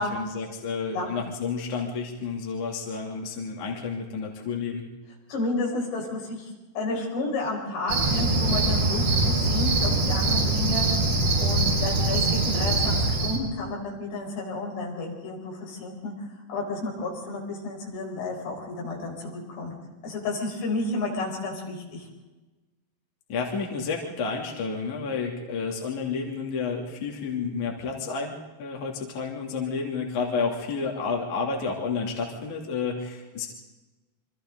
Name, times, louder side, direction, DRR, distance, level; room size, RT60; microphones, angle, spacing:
voice 1, 0.0-4.9 23.3-33.5, left 5 dB, 50° left, 0 dB, 4.0 m, -30 dB
voice 2, 5.3-6.5 6.8-11.0 11.4-19.8 20.0-22.1, left 2 dB, 80° left, -1 dB, 7.2 m, -31 dB
Cricket, 7.9-13.4, right 2 dB, 70° right, 5.7 m, -23 dB
28.0 x 25.0 x 3.9 m, 1.1 s
omnidirectional pair, 4.8 m